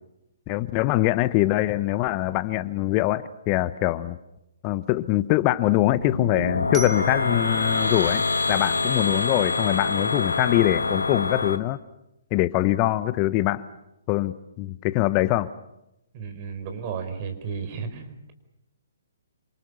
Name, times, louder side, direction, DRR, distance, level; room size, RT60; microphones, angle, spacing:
voice 1, 0.5-4.2 4.6-11.8 12.3-13.6 14.1-15.5, left 16 dB, 30° left, 15 dB, 0.9 m, -23 dB
sound 1, 5.9-11.6, left 3 dB, 75° left, 1.7 m, -25 dB
Glockenspiel, 6.7-9.6, right 5 dB, 15° right, 3.4 m, -42 dB
voice 2, 16.1-18.3, right 6 dB, 35° right, 7 dB, 5.1 m, -33 dB
27.5 x 26.0 x 7.0 m, 0.87 s
figure-of-eight pair, 130°, 0 cm